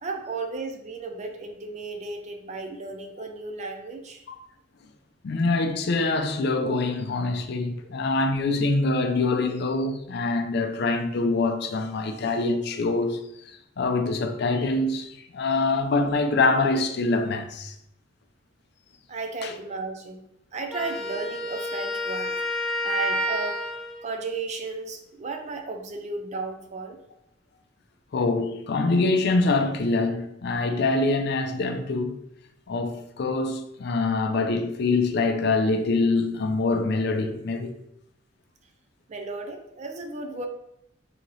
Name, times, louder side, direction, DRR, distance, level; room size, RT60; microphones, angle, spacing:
voice 1, 0.0-4.3 19.1-20.2 20.5-22.3 22.8-23.7 24.0-27.0 39.1-40.5, right 3 dB, 35° right, 0.4 m, -34 dB
voice 2, 5.2-13.5 13.8-17.8 19.4-19.5 28.1-32.2 32.7-37.8, left 3 dB, 60° left, 0.4 m, -25 dB
Wind instrument woodwind instrument, 20.7-24.1, equal, ahead, 0.7 m, -29 dB
3.1 x 2.8 x 3.9 m
head